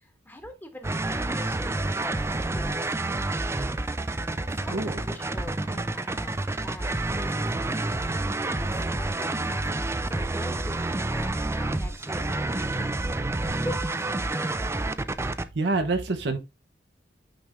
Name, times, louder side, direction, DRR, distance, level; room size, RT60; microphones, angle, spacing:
voice 1, 0.0-3.9 4.5-7.7 8.4-13.0 13.6-14.5, left 1 dB, 10° left, 1.3 m, -43 dB
sound 1, 0.8-15.4, right 2 dB, 15° right, 0.4 m, -29 dB
voice 2, 4.7-5.0 15.5-16.4, right 3 dB, 70° right, 0.9 m, -26 dB
8.8 x 3.4 x 3.5 m
head